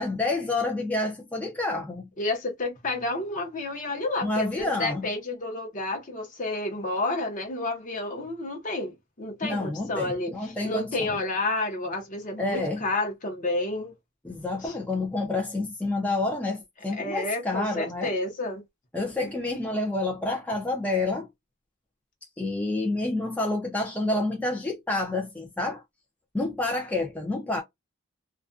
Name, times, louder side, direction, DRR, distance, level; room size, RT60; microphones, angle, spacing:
voice 1, 0.0-2.1 4.2-5.1 9.4-11.2 12.4-12.8 14.2-18.1 18.9-21.3 22.4-25.8 26.3-27.6, left 2 dB, 5° left, 0.5 m, -28 dB
voice 2, 2.2-13.9 14.6-14.7 16.9-18.6 19.2-19.3, left 2 dB, 40° left, 0.8 m, -30 dB
2.4 x 2.2 x 2.5 m
head